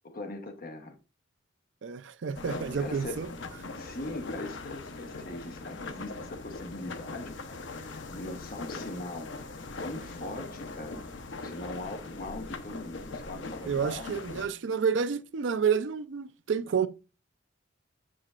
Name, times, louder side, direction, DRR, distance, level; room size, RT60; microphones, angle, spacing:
voice 1, 0.0-1.0 2.8-3.3 3.8-9.3 9.8-11.1 11.4-14.2, left 2 dB, 50° left, 1.0 m, -41 dB
voice 2, 1.8-3.3 13.6-16.9, right 6 dB, 80° right, 0.5 m, -29 dB
sound 1, 2.3-14.5, left 3 dB, 80° left, 0.7 m, -41 dB
7.6 x 6.5 x 2.4 m
head